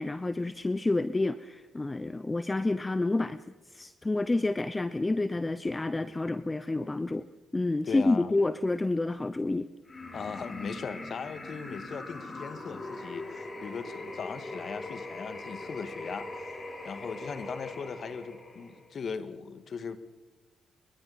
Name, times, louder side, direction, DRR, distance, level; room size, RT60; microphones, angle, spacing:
voice 1, 0.0-3.4 3.7-7.3 7.5-9.7, left 2 dB, 25° left, 13 dB, 0.8 m, -29 dB
voice 2, 7.9-8.3 10.1-16.5 16.8-20.0, left 5 dB, 55° left, 11 dB, 1.8 m, -38 dB
sound 1, 9.8-18.9, left 2 dB, 40° left, 7.6 m, -41 dB
30.0 x 23.0 x 4.2 m, 1.2 s
hypercardioid pair, 40°, 0 cm